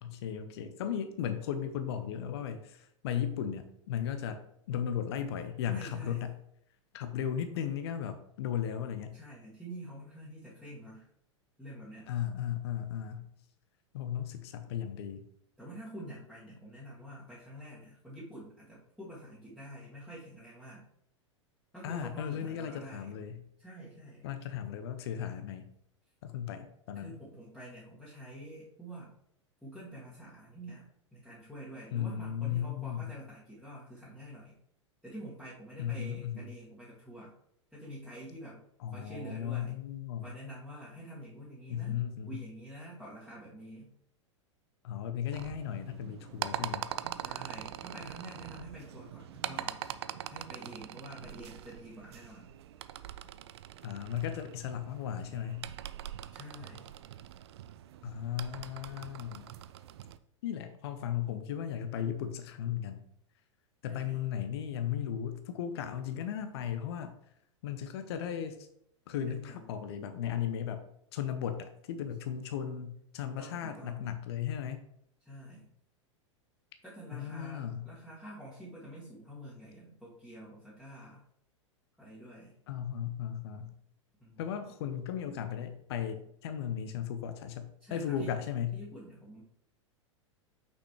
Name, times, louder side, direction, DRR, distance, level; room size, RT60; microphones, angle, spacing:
voice 1, 0.0-6.3 6.9-9.2 12.1-13.3 13.9-15.3 21.8-23.4 24.2-25.7 26.2-27.2 31.9-33.1 35.8-36.6 38.8-40.3 41.7-42.4 44.8-46.9 53.8-55.7 58.0-59.5 60.4-63.0 63.8-67.1 67.6-68.7 69.1-70.8 71.1-74.8 77.1-77.9 82.7-83.7 84.4-88.8, left 9 dB, 55° left, 9 dB, 0.7 m, -36 dB
voice 2, 5.7-6.2 9.1-11.1 11.6-12.1 15.6-20.8 21.7-23.1 23.6-24.2 27.0-29.1 29.6-34.5 35.0-37.3 37.7-38.6 38.9-39.7 40.2-42.0 42.3-43.9 47.2-49.8 50.3-52.5 56.3-56.9 63.9-64.2 69.3-69.7 73.4-74.1 75.3-75.7 76.8-81.2 82.0-82.5 84.2-84.5 87.8-88.3 88.7-89.4, right 1 dB, 5° left, -9 dB, 1.8 m, -47 dB
sound 1, 45.3-60.2, right 11 dB, 55° right, 0.4 m, -43 dB
5.9 x 5.9 x 3.2 m, 0.71 s
figure-of-eight pair, 95°, 16 cm